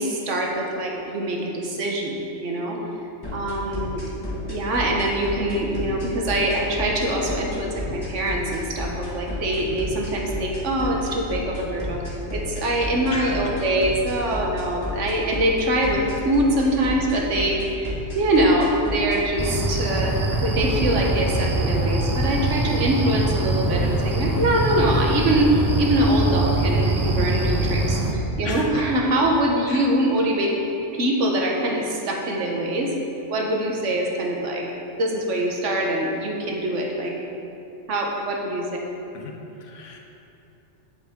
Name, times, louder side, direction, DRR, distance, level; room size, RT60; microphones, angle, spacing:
voice 1, 0.0-2.1 2.4-2.8 3.3-4.0 4.5-12.0 12.3-20.2 20.4-30.5 31.0-32.9 33.3-34.6 35.0-37.1 37.9-38.7, right 1 dB, 80° right, 0 dB, 1.4 m, -23 dB
sound 1, 3.2-19.2, left 1 dB, 20° left, 1.3 m, -31 dB
sound 2, 19.4-28.1, right 1 dB, 25° right, 0.4 m, -23 dB
voice 2, 28.4-28.8 29.7-29.8 39.1-39.3 39.6-40.0, left 4 dB, 90° left, 1 dB, 1.2 m, -34 dB
8.2 x 7.4 x 3.6 m, 2.8 s
omnidirectional pair, 1.2 m